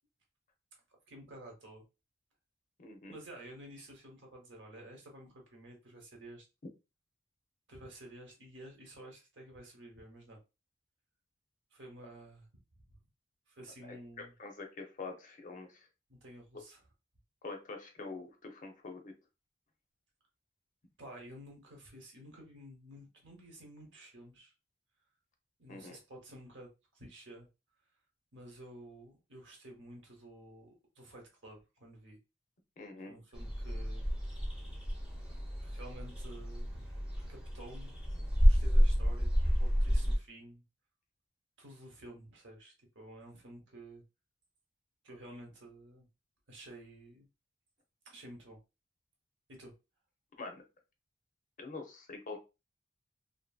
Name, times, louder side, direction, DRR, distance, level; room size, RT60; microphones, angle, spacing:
voice 1, 1.1-1.8 3.1-6.5 7.7-10.4 11.7-12.5 12.7-13.0 13.5-14.3 16.1-16.8 21.0-24.5 25.6-27.5 28.3-32.2 33.0-34.0 35.6-36.9 37.3-38.0 38.4-40.6 41.6-44.0 45.0-46.1 46.5-47.3 48.0-48.6 49.5-49.7, right 1 dB, 70° right, 0.9 m, -51 dB
voice 2, 2.8-3.2 13.8-14.0 14.4-15.8 17.4-19.1 25.7-26.0 32.8-33.1 50.4-50.6 51.6-52.4, left 3 dB, 45° left, 0.6 m, -45 dB
sound 1, 33.3-40.2, equal, 5° right, 0.7 m, -30 dB
2.6 x 2.6 x 2.3 m
head